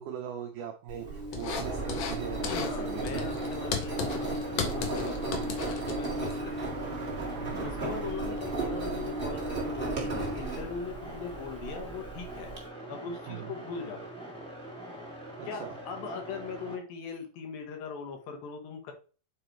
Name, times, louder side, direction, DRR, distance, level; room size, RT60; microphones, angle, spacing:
voice 1, 0.0-3.3 7.4-7.7 13.3-13.5 15.4-15.8, right 9 dB, 85° right, 3 dB, 1.8 m, -40 dB
Engine, 0.9-12.6, right 2 dB, 60° right, 0.5 m, -35 dB
sound 1, 1.3-2.2 2.4-2.8 3.0-6.3, left 6 dB, 85° left, 1.5 m, -35 dB
sound 2, 1.6-16.8, right 1 dB, 5° left, 0.9 m, -43 dB
voice 2, 2.5-6.7 7.2-12.5 12.9-14.0 15.5-18.9, left 5 dB, 70° left, 3 dB, 2.6 m, -40 dB
9.0 x 3.1 x 4.4 m, 0.36 s
omnidirectional pair, 4.6 m